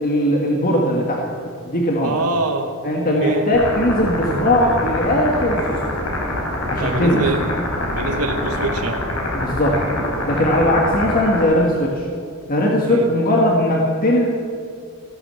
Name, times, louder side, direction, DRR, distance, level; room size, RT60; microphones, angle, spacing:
voice 1, 0.0-1.2 1.6-2.2 2.8-5.8 6.7-7.2 9.3-9.8 10.3-12.1 12.5-14.3, left 1 dB, 40° left, -1 dB, 1.7 m, -19 dB
voice 2, 2.0-2.7 3.2-3.5 6.7-7.4 7.9-9.0 12.9-13.1, right 2 dB, 90° right, 5 dB, 1.1 m, -24 dB
sound 1, 3.5-11.4, left 1 dB, 70° left, 4.7 m, -25 dB
16.0 x 11.5 x 7.6 m, 2.3 s
head